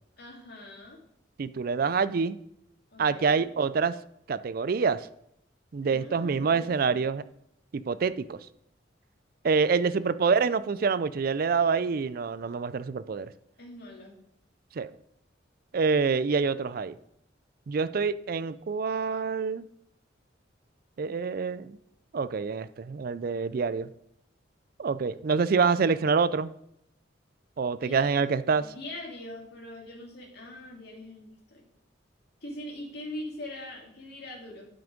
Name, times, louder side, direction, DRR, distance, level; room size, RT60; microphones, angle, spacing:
voice 1, 0.2-1.0 2.9-3.5 5.8-7.0 9.8-10.2 13.6-14.1 27.8-28.0 28.5-31.6 32.4-34.7, left 1 dB, 60° left, -1 dB, 2.4 m, -42 dB
voice 2, 1.4-2.4 3.0-4.0 4.3-5.1 5.7-7.2 7.7-8.4 9.4-13.3 14.8-14.9 15.7-17.0 17.7-19.7 21.0-21.8 22.1-23.9 24.8-26.5 27.6-28.7, right 5 dB, 50° right, 15 dB, 0.4 m, -26 dB
9.1 x 5.9 x 5.1 m, 0.74 s
head